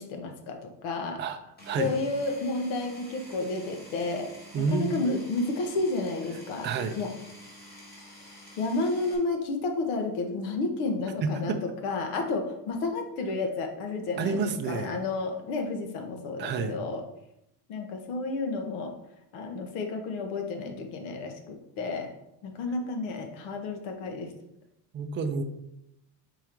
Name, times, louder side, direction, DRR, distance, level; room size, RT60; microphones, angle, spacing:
voice 1, 0.0-1.2 1.8-4.3 4.6-6.7 7.0-7.1 8.6-11.5 11.8-17.0 17.7-18.9 19.3-22.1 22.4-24.3, left 3 dB, 75° left, 4 dB, 1.4 m, -31 dB
Power tool, 1.6-9.2, left 1 dB, 20° left, 2.0 m, -49 dB
voice 2, 1.6-2.0 4.5-5.2 6.6-7.0 11.2-11.6 14.2-15.0 16.4-16.8 24.9-25.4, right 4 dB, 25° right, 6 dB, 0.4 m, -29 dB
5.1 x 4.6 x 4.5 m, 0.83 s
cardioid pair, 155°, 47 cm